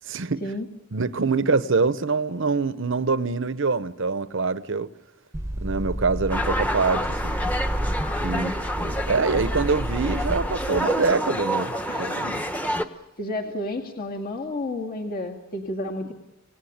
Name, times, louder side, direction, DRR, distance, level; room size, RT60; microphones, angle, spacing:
voice 1, 0.1-0.4 0.9-4.9 5.6-7.4 8.2-8.5 8.8-12.4, right 4 dB, 65° right, 0.9 m, -25 dB
sound 1, 5.3-10.7, right 1 dB, 15° right, 1.0 m, -30 dB
sound 2, 6.3-12.8, equal, 5° left, 1.2 m, -28 dB
voice 2, 11.9-12.3 13.2-16.1, left 1 dB, 45° left, 2.2 m, -31 dB
27.5 x 18.5 x 8.7 m
head